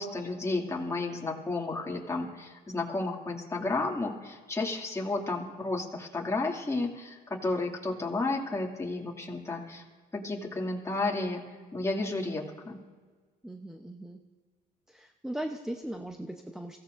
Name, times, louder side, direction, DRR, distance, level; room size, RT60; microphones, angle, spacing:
voice 1, 0.0-9.8 10.1-11.4 11.7-12.8, left 2 dB, 15° left, -1 dB, 2.4 m, -32 dB
voice 2, 13.4-14.2 14.9-16.8, right 1 dB, 5° right, 3 dB, 0.8 m, -38 dB
23.5 x 16.5 x 2.6 m, 1.5 s
cardioid pair, 110°, 17 cm